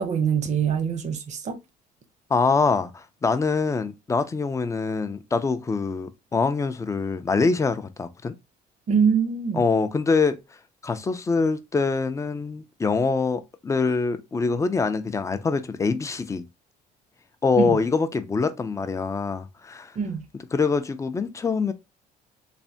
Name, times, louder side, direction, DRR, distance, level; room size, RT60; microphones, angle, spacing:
voice 1, 0.0-1.6 8.9-9.7 17.6-17.8 20.0-20.3, right 6 dB, 45° right, 0.6 m, -24 dB
voice 2, 2.3-8.3 9.5-10.4 10.8-16.4 17.4-19.9 20.5-21.7, left 4 dB, 20° left, 0.3 m, -24 dB
3.2 x 2.1 x 2.6 m
cardioid pair, 110°, 17 cm